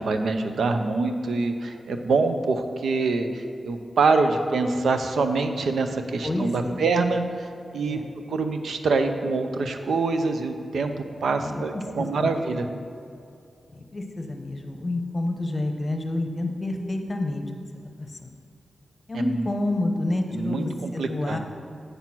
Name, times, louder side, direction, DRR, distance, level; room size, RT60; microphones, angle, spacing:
voice 1, 0.0-7.5 7.7-8.0 8.3-10.9 11.2-12.7 19.1-19.5 20.3-21.4, right 3 dB, 90° right, 7 dB, 0.6 m, -25 dB
voice 2, 6.2-6.8 7.9-8.0 11.4-11.6 12.0-12.5 13.7-17.4 18.0-18.2 19.1-21.4, left 2 dB, 30° left, 4 dB, 0.8 m, -28 dB
8.1 x 6.1 x 5.9 m, 2.5 s
wide cardioid pair, 125°, 0 cm